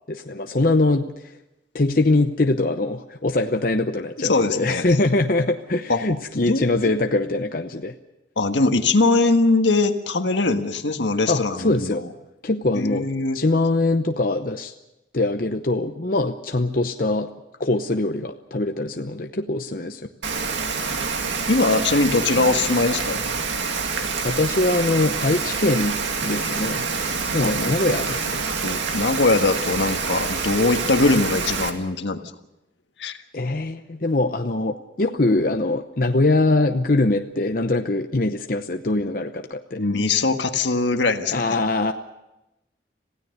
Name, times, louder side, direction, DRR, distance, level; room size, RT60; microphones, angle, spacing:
voice 1, 0.1-1.3 1.7-7.9 11.3-12.0 12.4-13.0 13.3-14.7 15.1-17.3 17.6-20.1 24.2-26.0 26.2-26.9 27.3-28.4 33.3-39.8 41.3-41.9, left 2 dB, 50° left, 5 dB, 0.8 m, -22 dB
voice 2, 4.2-4.9 5.9-6.0 6.3-6.6 8.4-12.0 12.7-13.4 21.5-23.2 27.4-27.8 28.6-32.2 33.0-33.2 39.8-41.6, left 3 dB, 80° left, 7 dB, 1.5 m, -21 dB
Rain, 20.2-31.7, right 4 dB, 90° right, 2.3 m, -27 dB
27.0 x 16.5 x 6.6 m, 0.95 s
head